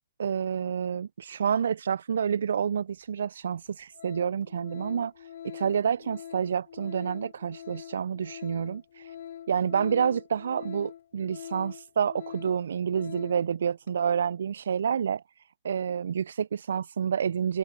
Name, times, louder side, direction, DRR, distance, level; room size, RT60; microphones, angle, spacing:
voice 1, 0.2-9.1 9.5-15.2 15.6-17.6, right 7 dB, 65° right, 0.6 m, -29 dB
Organ, 2.9-3.0 3.5-3.7 3.9-13.5 13.8-14.0, left 10 dB, 60° left, 6.3 m, -44 dB
figure-of-eight pair, 115°, 0 cm